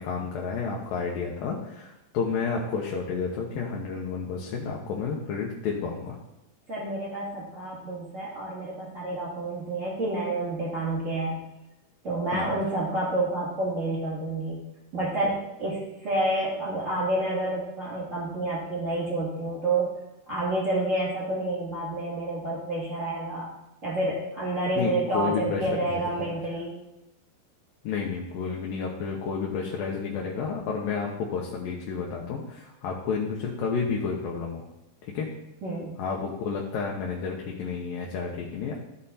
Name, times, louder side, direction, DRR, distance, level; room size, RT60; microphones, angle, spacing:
voice 1, 0.0-6.2 12.3-12.5 24.8-26.3 27.8-34.6 35.0-35.3 36.0-38.8, left 5 dB, 75° left, -2 dB, 2.6 m, -31 dB
voice 2, 6.7-11.4 12.0-14.6 14.9-20.0 20.3-23.5 23.8-26.8 35.6-36.0, right 2 dB, 25° right, -7 dB, 2.6 m, -29 dB
14.0 x 5.4 x 4.2 m, 0.94 s
omnidirectional pair, 4.2 m